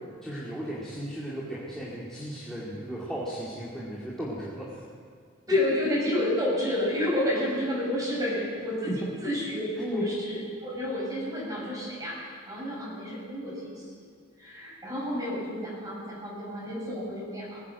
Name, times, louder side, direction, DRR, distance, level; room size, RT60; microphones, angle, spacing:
voice 1, 0.2-4.8 8.9-9.0 9.8-10.0, right 1 dB, ahead, -8 dB, 2.4 m, -35 dB
voice 2, 5.5-8.9 9.2-13.8 14.4-17.6, left 1 dB, 15° right, -6 dB, 5.4 m, -30 dB
19.5 x 8.3 x 8.4 m, 2.1 s
head